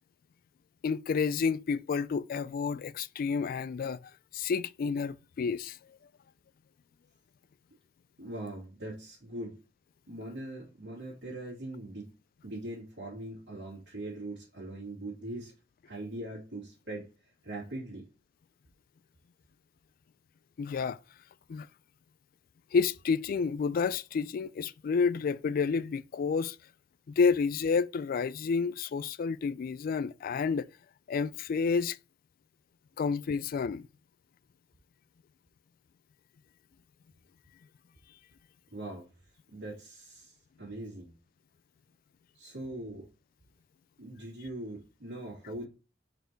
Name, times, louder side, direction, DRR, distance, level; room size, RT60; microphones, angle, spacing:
voice 1, 0.8-4.0 4.3-5.8 20.6-21.0 21.5-21.7 22.7-26.6 27.2-30.7 31.1-32.0 33.0-33.9, left 5 dB, 50° left, 0.3 m, -30 dB
voice 2, 8.2-9.6 10.1-12.1 12.4-15.5 15.8-18.1 38.7-39.1 39.5-41.1 42.3-43.1 44.0-45.7, right 1 dB, 75° right, 2.5 m, -41 dB
5.0 x 4.5 x 4.5 m
head